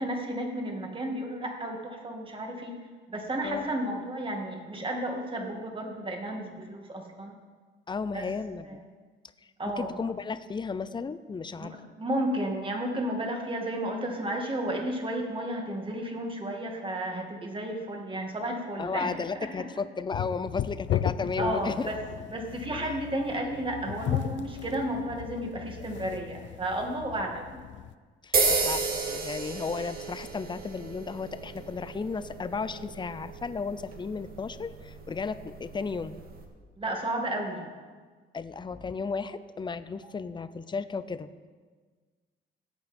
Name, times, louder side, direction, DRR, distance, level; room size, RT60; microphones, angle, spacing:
voice 1, 0.0-2.7 3.1-7.3 8.1-8.2 8.6-8.8 9.6-9.9 11.6-19.5 21.4-22.0 22.3-27.6 36.8-37.7, right 1 dB, 25° right, 2 dB, 2.3 m, -32 dB
voice 2, 7.9-8.8 9.8-11.8 18.8-21.9 22.8-23.0 28.2-36.2 38.3-41.3, left 5 dB, 25° left, 13 dB, 0.6 m, -34 dB
sound 1, 20.1-27.9, left 10 dB, 70° left, 0.6 m, -35 dB
sound 2, 28.3-36.4, right 4 dB, 50° right, 1.9 m, -33 dB
17.5 x 8.3 x 4.4 m, 1.5 s
cardioid pair, 90°, 20 cm